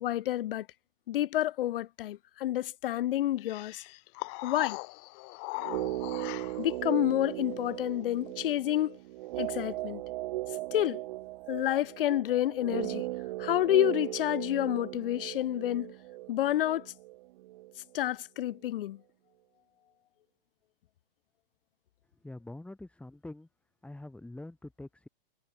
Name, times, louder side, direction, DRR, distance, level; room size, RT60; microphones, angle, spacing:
voice 1, 0.0-0.7 1.1-3.8 4.4-4.8 6.6-9.0 9.4-10.0 10.7-11.0 11.5-13.0 13.4-15.9 16.3-16.9 17.9-19.0, left 13 dB, 65° left, 0.6 m, -29 dB
sound 1, 3.4-6.8, left 40 dB or more, 40° left, 1.5 m, -40 dB
sound 2, 5.6-17.7 18.0-18.1, right 18 dB, 55° right, 5.7 m, -37 dB
voice 2, 22.1-23.5 23.8-25.1, left 2 dB, 5° left, 5.5 m, -45 dB
hypercardioid pair, 125°, 29 cm